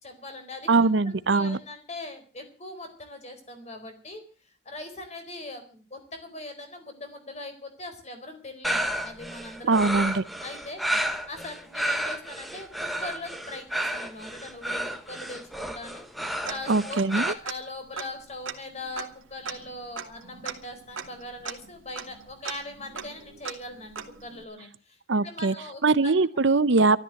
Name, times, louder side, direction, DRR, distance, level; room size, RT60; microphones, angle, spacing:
voice 1, 0.0-0.7 1.0-4.2 4.6-9.9 10.4-10.8 11.3-12.7 13.0-26.1, left 2 dB, 35° left, 4.3 m, -41 dB
voice 2, 0.7-1.6 9.7-10.2 16.7-17.3 25.1-25.5 25.8-27.0, right 3 dB, 60° right, 0.7 m, -22 dB
sound 1, 8.6-17.3, right 1 dB, ahead, 1.4 m, -31 dB
Tick-tock, 16.5-17.2 17.5-17.6 17.9-24.4, right 6 dB, 75° right, 2.1 m, -40 dB
13.5 x 13.0 x 7.7 m
head